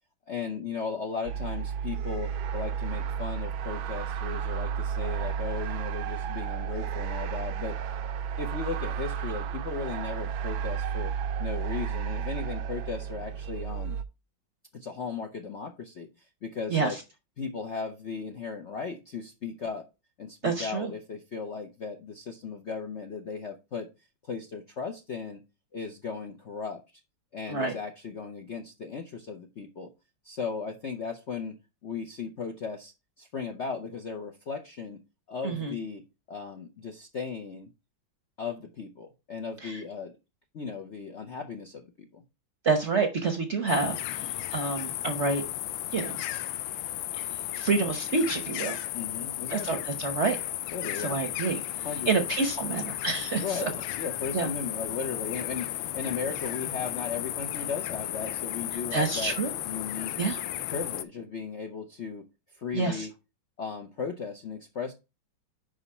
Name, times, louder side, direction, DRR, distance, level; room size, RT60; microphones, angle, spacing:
voice 1, 0.3-7.8 8.4-11.1 11.4-14.0 14.7-16.1 16.4-17.0 17.4-19.8 20.2-23.9 24.2-25.4 25.7-26.8 27.3-29.9 30.2-31.6 31.8-35.0 35.3-37.7 38.4-40.1 40.5-42.2 48.9-49.8 50.7-51.2 51.8-52.3 52.6-52.7 53.4-59.4 59.6-60.2 60.6-62.3 62.5-63.1 63.6-64.9, left 5 dB, 55° left, 4 dB, 0.7 m, -36 dB
sound 1, 1.2-14.0, right 8 dB, 75° right, 1.4 m, -32 dB
voice 2, 20.4-20.9 27.5-27.7 35.4-35.7 39.6-39.8 42.6-45.4 45.9-46.2 47.5-48.8 49.5-50.4 50.9-51.6 52.1-53.7 54.3-54.5 58.9-59.5 60.2-60.4 62.7-63.1, right 4 dB, 45° right, 6 dB, 1.0 m, -28 dB
sound 2, 43.7-61.0, left 13 dB, 80° left, 1.3 m, -34 dB
5.4 x 5.1 x 5.5 m, 0.27 s
omnidirectional pair, 2.2 m